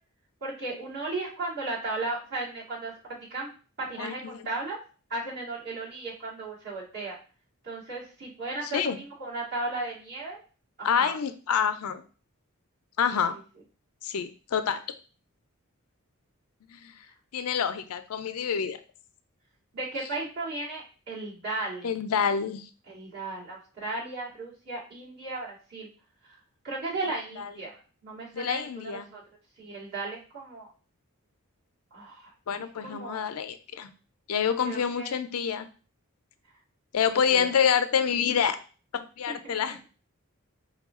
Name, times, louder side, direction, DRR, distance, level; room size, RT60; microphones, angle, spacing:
voice 1, 0.4-2.9 3.3-3.5 3.8-4.8 5.1-7.2 7.6-10.4 10.8-11.2 13.1-13.4 19.7-21.9 22.9-25.9 26.2-26.4 26.6-29.2 29.6-30.7 31.9-32.3 32.8-33.3 34.6-35.2 37.1-37.5 39.3-39.7, right 2 dB, 50° right, -6 dB, 2.0 m, -35 dB
voice 2, 10.8-12.0 13.0-13.4 14.0-14.8 16.7-16.9 17.3-18.8 21.8-22.6 28.3-29.1 32.5-33.9 34.3-35.7 36.9-38.6 38.9-39.9, left 7 dB, 85° left, 10 dB, 0.5 m, -27 dB
4.8 x 2.2 x 3.6 m, 0.37 s
head